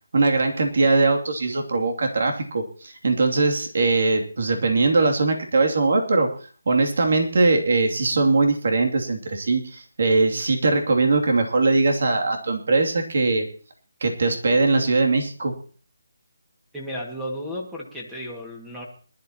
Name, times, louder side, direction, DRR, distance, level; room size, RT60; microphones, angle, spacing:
voice 1, 0.1-6.3 6.7-13.5 14.0-15.5, right 3 dB, 60° right, 2 dB, 2.7 m, -21 dB
voice 2, 16.7-18.8, equal, 5° right, -2 dB, 2.0 m, -33 dB
21.5 x 12.0 x 3.0 m, 0.41 s
hypercardioid pair, 165°, 0 cm